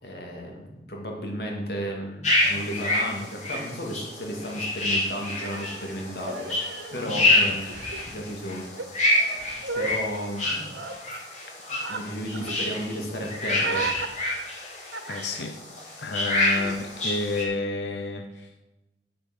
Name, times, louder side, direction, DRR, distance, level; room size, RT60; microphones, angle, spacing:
voice 1, 0.0-6.5 6.9-7.7 8.1-8.7 9.3-9.5 9.7-10.7 11.9-13.9, equal, 60° left, 0 dB, 2.6 m, -33 dB
sound 1, 2.2-17.4, left 2 dB, 40° left, 2.9 m, -28 dB
Human voice, 5.3-7.2 7.5-8.0 8.7-10.0 10.6-10.9 11.8-12.0 12.3-12.6 13.6-14.1 14.9-15.4 16.5-16.8, right 4 dB, 90° right, 1.6 m, -35 dB
voice 2, 6.9-7.6 15.1-15.6 16.0-18.5, left 3 dB, 80° left, 6 dB, 0.9 m, -31 dB
8.6 x 8.5 x 6.8 m, 1.0 s
head